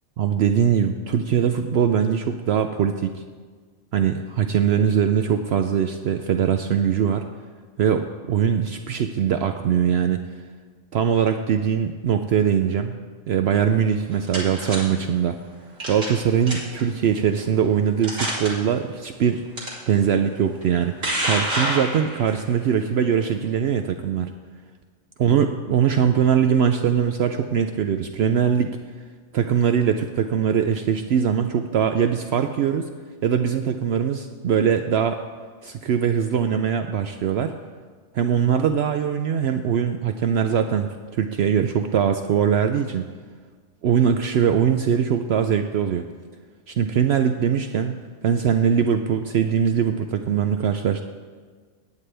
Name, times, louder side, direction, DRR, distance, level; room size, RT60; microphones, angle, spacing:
voice 1, 0.2-3.2 3.9-7.2 7.8-10.3 10.9-13.0 13.3-15.4 15.8-19.5 19.9-24.3 25.2-28.8 29.3-32.9 33.2-35.2 35.6-37.5 38.1-43.1 43.8-46.1 46.7-51.0, right 8 dB, 65° right, 7 dB, 0.7 m, -21 dB
sound 1, 13.9-14.8 15.8-16.2 16.5-16.8 17.5-17.6 18.0-18.5 19.6-19.7 20.6-22.4, right 1 dB, 85° right, 3.2 m, -26 dB
18.0 x 9.2 x 3.4 m, 1.5 s
omnidirectional pair, 1.3 m